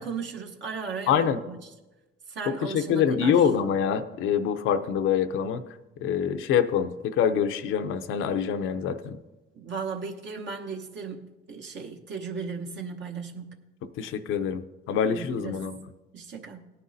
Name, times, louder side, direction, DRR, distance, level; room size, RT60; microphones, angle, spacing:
voice 1, 0.0-1.7 2.3-3.5 9.5-13.6 15.1-15.7 16.1-16.7, right 5 dB, 65° right, 1.1 m, -36 dB
voice 2, 1.1-1.4 2.6-5.6 6.0-9.2 14.0-15.8, left 8 dB, 90° left, 0.6 m, -25 dB
17.5 x 9.7 x 2.7 m
cardioid pair, 90°, 20 cm